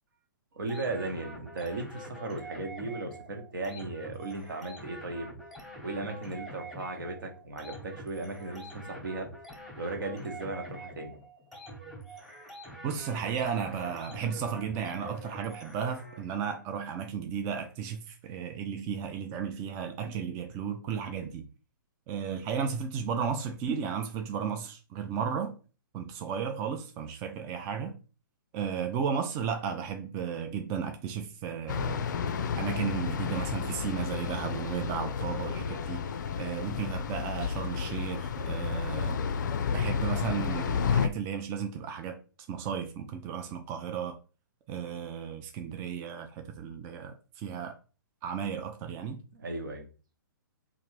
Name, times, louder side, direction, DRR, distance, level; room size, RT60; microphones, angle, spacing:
voice 1, 0.5-5.3 5.8-9.3 9.8-11.1 49.3-49.9, right 2 dB, 70° right, 1.0 m, -36 dB
sound 1, 0.7-16.4, right 1 dB, ahead, 1.0 m, -46 dB
voice 2, 12.8-21.5 22.1-25.5 25.9-28.0 28.5-32.0 32.6-36.1 36.4-39.2 39.7-42.2 42.5-44.2 44.7-47.8 48.2-49.2, right 7 dB, 25° right, 0.3 m, -34 dB
sound 2, 31.7-41.1, left 6 dB, 60° left, 0.4 m, -31 dB
3.1 x 2.5 x 3.1 m
hypercardioid pair, 125°, 11 cm